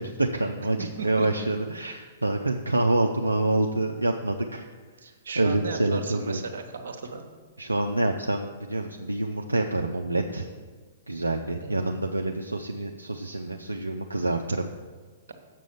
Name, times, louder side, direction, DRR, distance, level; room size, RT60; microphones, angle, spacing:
voice 1, 0.0-4.7 5.4-6.4 7.6-10.5 11.1-14.7, right 2 dB, 85° right, 2 dB, 0.5 m, -27 dB
voice 2, 0.8-1.3 5.0-7.2 11.6-11.9, right 4 dB, 60° right, 6 dB, 1.1 m, -36 dB
7.5 x 6.2 x 7.1 m, 1.4 s
figure-of-eight pair, 110°, 0 cm